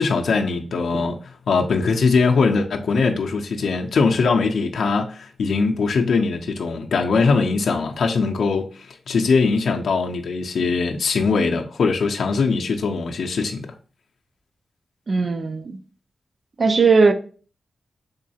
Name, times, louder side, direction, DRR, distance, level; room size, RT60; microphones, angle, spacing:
voice 1, 0.0-8.7 9.1-13.7, left 4 dB, 80° left, 0.5 m, -21 dB
voice 2, 15.1-15.8 16.6-17.1, right 4 dB, 40° right, 0.4 m, -18 dB
3.8 x 3.1 x 2.7 m
wide cardioid pair, 155°, 0 cm